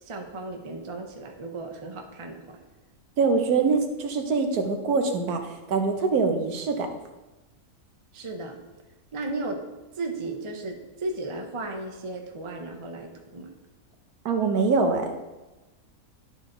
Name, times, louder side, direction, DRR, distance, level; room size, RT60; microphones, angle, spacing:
voice 1, 0.0-2.6 8.1-8.6 9.1-9.7 9.9-13.5, right 2 dB, 30° right, 3 dB, 0.6 m, -35 dB
voice 2, 3.2-6.9 14.2-15.2, right 4 dB, 85° right, 5 dB, 1.4 m, -24 dB
11.0 x 4.0 x 3.8 m, 1.1 s
omnidirectional pair, 1.6 m